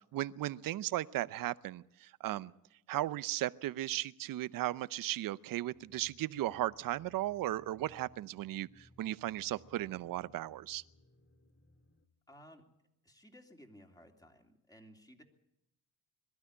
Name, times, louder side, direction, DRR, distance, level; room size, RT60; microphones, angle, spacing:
voice 1, 0.1-2.5 2.9-10.8, right 15 dB, 60° right, 17 dB, 0.7 m, -36 dB
sound 1, 5.7-12.1, left 1 dB, 35° left, 2.8 m, -64 dB
voice 2, 12.3-12.6 13.0-15.2, equal, 10° left, 3 dB, 3.1 m, -57 dB
22.5 x 13.0 x 9.9 m, 0.86 s
cardioid pair, 100°, 39 cm